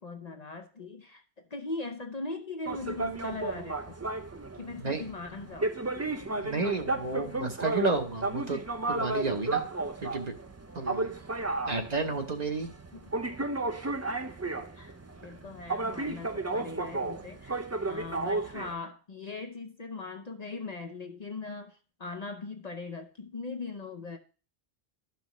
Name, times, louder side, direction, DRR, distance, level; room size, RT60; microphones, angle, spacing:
voice 1, 0.0-4.0 4.5-5.7 6.3-6.4 7.2-7.4 12.9-13.2 14.6-17.6 17.9-24.2, left 3 dB, 45° left, 5 dB, 0.7 m, -40 dB
sound 1, 2.7-18.7, right 3 dB, 25° right, 0.4 m, -33 dB
voice 2, 6.4-8.6 8.9-9.6 10.0-10.3 10.7-11.1 11.7-12.7, right 3 dB, 40° right, 5 dB, 1.0 m, -31 dB
12.5 x 5.8 x 3.1 m, 0.36 s
omnidirectional pair, 1.1 m